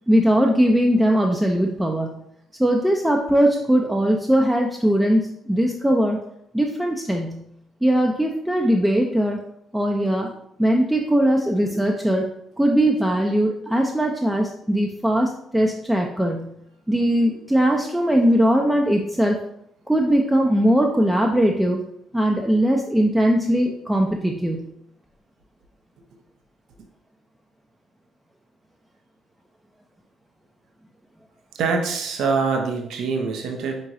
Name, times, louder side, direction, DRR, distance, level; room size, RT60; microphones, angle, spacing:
voice 1, 0.1-2.2 2.6-6.2 6.5-7.4 7.8-9.4 9.7-10.3 10.6-12.3 12.6-16.5 16.9-19.4 19.9-21.8 22.1-24.7, equal, 5° right, 1 dB, 0.5 m, -20 dB
voice 2, 31.5-33.9, right 4 dB, 60° right, 3 dB, 0.6 m, -24 dB
4.6 x 3.9 x 2.5 m, 0.74 s
figure-of-eight pair, 45°, 0 cm